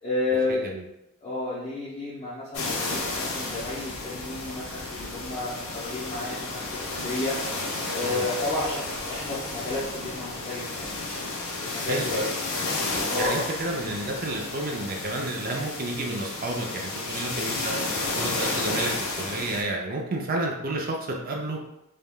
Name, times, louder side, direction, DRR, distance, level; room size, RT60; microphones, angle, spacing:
voice 1, 0.0-0.6 1.2-12.2 13.1-13.5, left 2 dB, 25° left, -10 dB, 0.6 m, -32 dB
sound 1, 2.5-19.6, left 2 dB, 70° left, 0.5 m, -32 dB
voice 2, 11.9-12.3 13.2-17.8 18.2-18.9 19.2-21.0 21.2-21.6, right 2 dB, 40° right, 0 dB, 0.5 m, -30 dB
3.4 x 2.2 x 2.2 m, 0.89 s
head